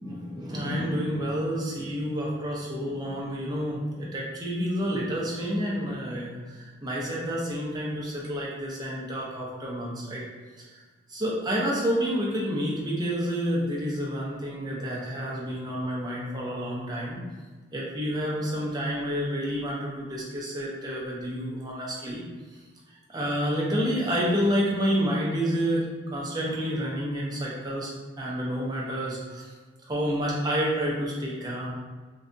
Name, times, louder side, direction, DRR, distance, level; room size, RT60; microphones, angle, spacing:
voice 1, 0.0-10.2 10.6-10.7 11.1-17.2 17.7-22.2 23.1-25.9 26.1-29.4 29.9-31.7, equal, 20° right, -4 dB, 0.5 m, -29 dB
2.6 x 2.2 x 2.5 m, 1.4 s
head